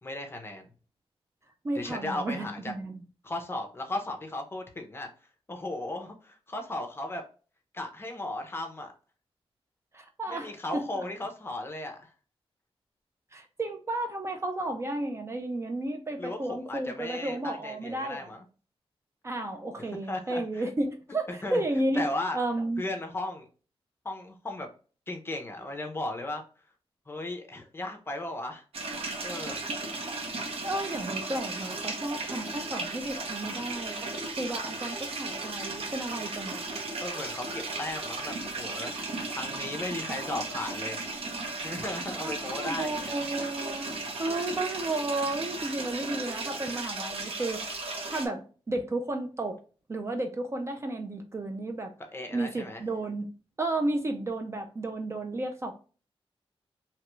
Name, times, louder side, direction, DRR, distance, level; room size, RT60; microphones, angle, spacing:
voice 1, 0.0-0.7 1.7-2.7 3.2-5.1 5.5-7.2 7.7-8.9 10.3-12.1 16.2-18.4 20.1-20.6 21.4-21.6 21.9-22.4 22.8-23.5 24.0-24.7 25.1-26.4 27.1-28.6 29.2-29.6 37.0-38.9 39.3-41.0 41.6-43.2 52.1-52.8, left 2 dB, 25° left, 0.6 m, -36 dB
voice 2, 1.6-3.0 9.9-11.1 13.3-18.3 19.2-22.8 30.6-34.1 34.4-36.7 42.2-47.7 48.0-49.6 49.9-51.9 52.3-53.3 53.6-55.7, right 2 dB, 25° right, 0.4 m, -33 dB
sound 1, 28.7-48.3, right 3 dB, 75° right, 0.8 m, -35 dB
2.9 x 2.3 x 3.0 m
wide cardioid pair, 180°, 10 cm